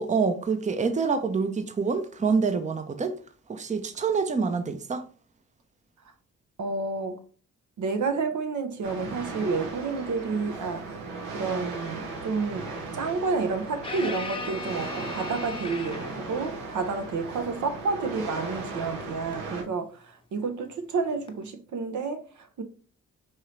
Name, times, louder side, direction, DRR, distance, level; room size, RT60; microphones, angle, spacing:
voice 1, 0.0-3.1 3.5-5.0, right 5 dB, 20° right, 0.6 m, -26 dB
voice 2, 6.6-7.2 7.8-11.0 11.3-22.6, right 4 dB, 60° right, 0.7 m, -30 dB
sound 1, 8.8-19.6, right 3 dB, 80° right, 1.1 m, -37 dB
sound 2, 13.8-16.3 19.3-19.5 21.3-21.4, left 3 dB, 15° left, 0.8 m, -37 dB
4.7 x 2.8 x 3.1 m
hypercardioid pair, 45°, 34 cm